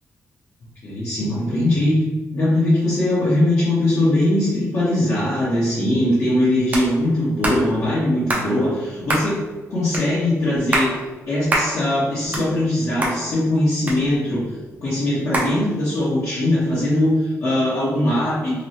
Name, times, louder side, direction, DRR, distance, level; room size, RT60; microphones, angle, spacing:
voice 1, 0.8-2.0 2.3-9.4 9.7-10.9 11.3-14.6 14.8-18.6, left 1 dB, 55° left, -11 dB, 0.9 m, -20 dB
sound 1, 6.7-6.9 7.4-7.6 8.3-8.5 9.1-9.3 9.9-10.1 10.6-10.9 11.5-11.7 12.1-12.8 13.0-13.2 13.9-14.4 15.3-15.5, right 1 dB, 25° right, 0.5 m, -23 dB
3.0 x 2.0 x 2.7 m, 1.2 s
wide cardioid pair, 125°, 6 cm